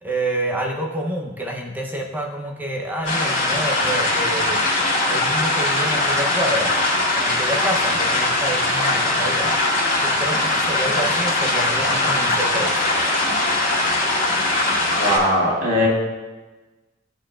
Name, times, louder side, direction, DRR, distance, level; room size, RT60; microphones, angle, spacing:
voice 1, 0.0-4.6 5.1-6.7 7.1-9.5 10.0-12.7, right 1 dB, 10° right, -1 dB, 0.8 m, -28 dB
sound 1, 3.0-15.2, left 2 dB, 40° left, 2.2 m, -21 dB
voice 2, 15.0-15.9, left 1 dB, 90° right, -5 dB, 2.4 m, -19 dB
13.0 x 4.5 x 2.5 m, 1.2 s
head